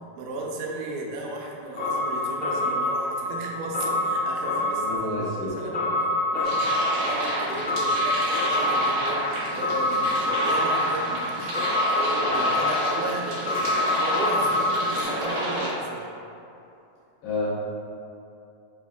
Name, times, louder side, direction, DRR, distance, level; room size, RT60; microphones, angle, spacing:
voice 1, 0.2-4.9 5.2-6.7 7.0-13.4 13.9-16.1, right 2 dB, 90° right, -1 dB, 2.3 m, -35 dB
sound 1, 1.8-15.0, left 1 dB, 55° left, 0.9 m, -26 dB
voice 2, 4.8-5.5 17.2-17.5, left 2 dB, 80° left, -7 dB, 1.9 m, -29 dB
sound 2, 6.4-15.7, right 1 dB, 70° right, 2.5 m, -30 dB
5.5 x 2.1 x 2.4 m, 2.7 s
omnidirectional pair, 3.9 m